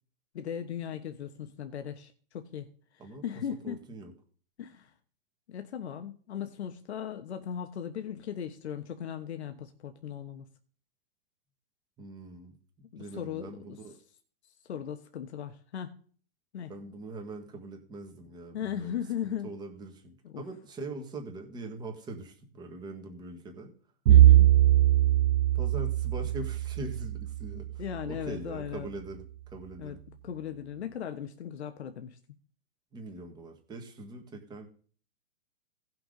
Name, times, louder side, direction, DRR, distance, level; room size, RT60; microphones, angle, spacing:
voice 1, 0.3-2.7 3.2-3.8 4.6-4.9 5.5-10.5 12.9-13.5 14.7-16.0 16.5-16.7 18.5-19.5 20.2-20.4 24.1-24.6 27.5-28.9 29.8-30.0 30.2-32.2, left 9 dB, 80° left, 7 dB, 1.2 m, -37 dB
voice 2, 3.6-4.1 12.0-12.6 13.0-14.0 16.7-23.7 25.5-30.0 32.9-34.7, right 2 dB, 15° right, 3 dB, 1.6 m, -42 dB
Bowed string instrument, 24.1-28.3, right 13 dB, 70° right, 0.5 m, -22 dB
17.5 x 6.0 x 3.9 m, 0.44 s
hypercardioid pair, 155°, 33 cm